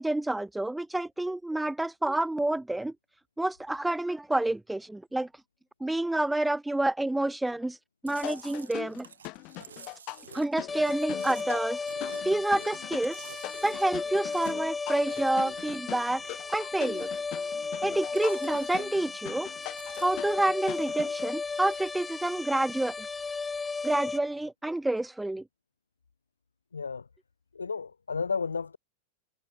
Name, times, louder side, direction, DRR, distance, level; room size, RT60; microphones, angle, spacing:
voice 1, 0.0-2.9 3.4-5.3 5.8-7.8 8.0-9.1 10.3-11.8 12.2-13.3 13.6-16.2 16.5-17.1 17.8-19.5 20.0-23.1 23.8-25.4, right 1 dB, 5° right, 0.4 m, -28 dB
Chewing mastication, 8.1-16.5 16.8-17.7 18.0-19.2 19.4-21.1 21.4-21.9, right 7 dB, 70° right, 6.3 m, -51 dB
sound 1, 8.2-21.3, left 25 dB, 40° left, 1.9 m, -42 dB
sound 2, 10.7-24.2, left 4 dB, 15° left, 1.6 m, -35 dB
voice 2, 26.7-27.1 27.5-28.8, left 5 dB, 75° left, 0.5 m, -32 dB
figure-of-eight pair, 90°, 0 cm